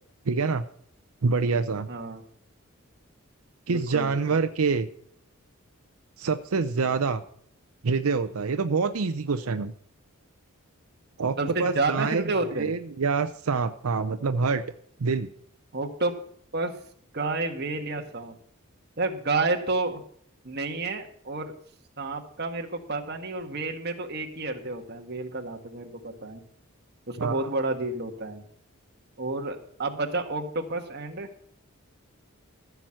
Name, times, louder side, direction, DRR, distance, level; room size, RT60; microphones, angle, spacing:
voice 1, 0.3-0.6 1.2-1.9 3.7-4.9 6.2-7.2 7.8-9.7 11.2-12.3 12.6-14.6 15.0-15.3 27.2-27.5, right 4 dB, 90° right, 9 dB, 0.6 m, -26 dB
voice 2, 1.9-2.2 3.7-4.4 11.4-12.7 15.7-16.2 16.5-16.7 17.1-18.3 19.0-20.0 20.4-21.5 22.0-26.4 27.1-28.4 29.2-31.3, right 3 dB, 50° right, 4 dB, 1.4 m, -30 dB
15.0 x 6.0 x 7.6 m, 0.63 s
head